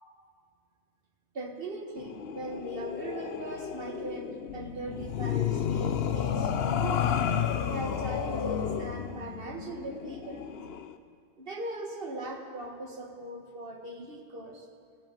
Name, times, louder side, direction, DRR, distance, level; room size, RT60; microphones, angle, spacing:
voice 1, 1.3-7.2 7.7-10.6 11.4-14.7, right 2 dB, 60° right, 2 dB, 1.8 m, -39 dB
sound 1, 2.0-10.9, left 8 dB, 75° left, 0.9 m, -32 dB
16.0 x 7.9 x 8.8 m, 2.1 s
omnidirectional pair, 1.1 m